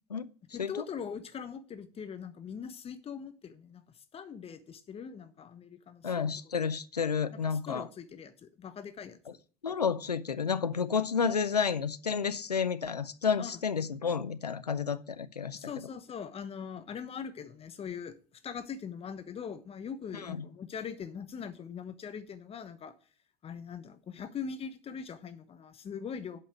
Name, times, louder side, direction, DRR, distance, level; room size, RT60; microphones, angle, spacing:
voice 1, 0.5-3.8 4.1-6.3 7.3-9.2 13.4-13.5 15.5-18.1 18.4-22.9 23.4-26.4, left 7 dB, 30° left, 1.1 m, -41 dB
voice 2, 6.0-7.9 9.6-15.7 20.1-20.4, left 6 dB, 90° left, 0.5 m, -31 dB
8.1 x 5.5 x 7.7 m
figure-of-eight pair, 70°, 20 cm